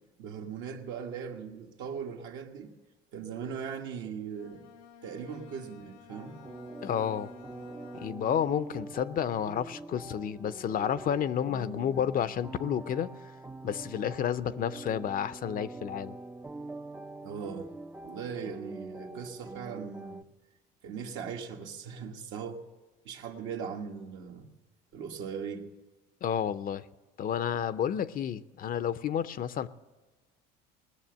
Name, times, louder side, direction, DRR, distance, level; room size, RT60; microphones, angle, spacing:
voice 1, 0.2-2.7 3.1-4.6 5.0-6.4 17.2-17.7 18.0-20.2 20.8-22.6 23.0-24.5 24.9-25.7, right 6 dB, 75° right, 1.5 m, -39 dB
Bowed string instrument, 4.3-8.5, left 8 dB, 85° left, 0.8 m, -54 dB
sound 1, 6.1-20.2, right 2 dB, 10° right, 0.4 m, -44 dB
voice 2, 6.8-7.3 7.9-13.1 13.6-16.2 26.2-26.8 27.2-29.7, left 9 dB, 45° left, 0.6 m, -31 dB
19.5 x 6.7 x 7.8 m
supercardioid pair, 85°, 20 cm